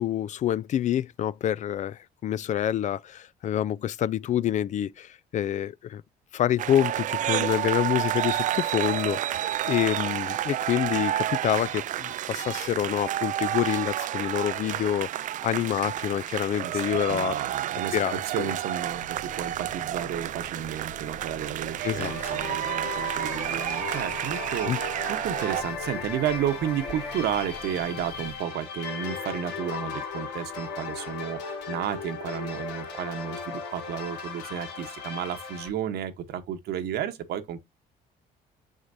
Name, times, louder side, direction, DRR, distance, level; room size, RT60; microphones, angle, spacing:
voice 1, 0.0-6.0 6.3-15.1 15.4-17.4 17.9-18.5 21.8-22.1 24.7-24.8, left 11 dB, 45° left, 0.4 m, -27 dB
sound 1, 6.6-25.6, right 12 dB, 50° right, 0.4 m, -30 dB
voice 2, 16.6-37.6, right 10 dB, 70° right, 1.1 m, -32 dB
sound 2, 18.8-28.4, left 4 dB, 65° left, 2.2 m, -48 dB
sound 3, 22.0-35.7, left 5 dB, 85° left, 3.3 m, -37 dB
6.6 x 6.4 x 2.7 m
cardioid pair, 110°, 17 cm